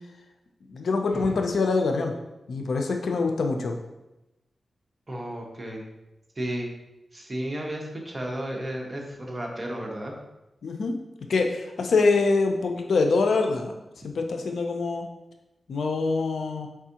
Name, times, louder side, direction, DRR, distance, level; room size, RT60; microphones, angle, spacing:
voice 1, 0.7-2.1 2.5-3.8 10.6-11.0 11.3-13.7 14.0-15.1 15.7-16.7, left 3 dB, 80° left, 4 dB, 0.5 m, -24 dB
voice 2, 5.1-5.9 6.4-6.7 7.1-10.1, right 1 dB, 35° right, 0 dB, 0.9 m, -33 dB
4.8 x 3.5 x 2.8 m, 0.96 s
wide cardioid pair, 75°, 0 cm